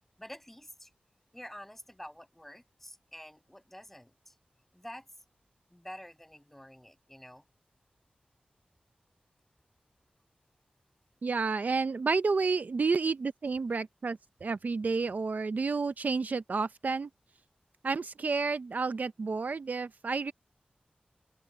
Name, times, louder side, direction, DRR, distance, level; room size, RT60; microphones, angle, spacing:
voice 1, 0.2-0.9 1.3-4.3 4.7-5.1 5.7-7.4, equal, 5° left, 6.2 m, -48 dB
voice 2, 11.2-17.1 17.8-20.3, right 4 dB, 65° right, 0.6 m, -30 dB
open air
wide cardioid pair, 90°, 3 cm